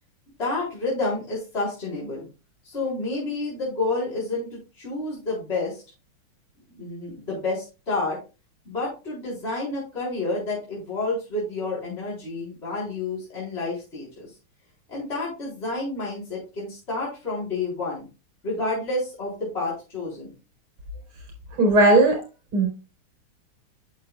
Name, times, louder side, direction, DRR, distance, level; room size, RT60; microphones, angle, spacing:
voice 1, 0.4-2.3 2.6-5.8 6.7-8.2 8.7-14.3 14.9-18.0 18.4-20.3, left 2 dB, 25° left, -7 dB, 4.3 m, -29 dB
voice 2, 21.6-22.2 22.5-22.7, right 2 dB, 85° right, 1 dB, 5.2 m, -16 dB
11.0 x 6.5 x 2.4 m, 0.30 s
omnidirectional pair, 2.4 m